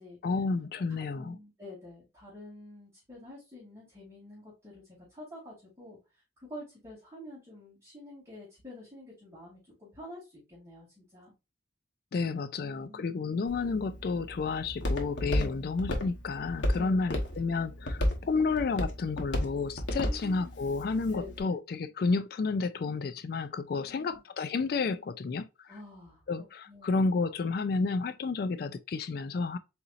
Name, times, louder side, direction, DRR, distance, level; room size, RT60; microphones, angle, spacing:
voice 1, 0.2-1.4 12.1-25.7 26.3-29.6, left 4 dB, 55° left, 0.3 m, -31 dB
voice 2, 1.1-4.8 5.1-6.0 6.5-11.3 12.6-13.2 15.3-15.7 16.7-16.9 19.9-20.5 21.1-21.6 23.7-24.2 25.7-26.9, left 1 dB, 15° right, 2.4 m, -48 dB
Walk footsteps, 13.5-21.4, left 1 dB, 75° left, 1.1 m, -34 dB
4.2 x 3.9 x 2.4 m
head